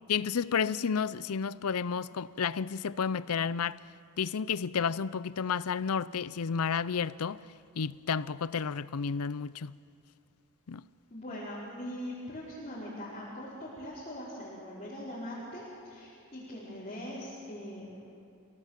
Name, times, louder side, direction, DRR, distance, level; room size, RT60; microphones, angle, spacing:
voice 1, 0.1-3.8 4.2-7.4 7.7-9.8 10.7-10.8, left 6 dB, 85° left, 0.6 m, -31 dB
voice 2, 11.1-18.0, equal, 30° left, 5.1 m, -41 dB
28.5 x 17.5 x 7.5 m
head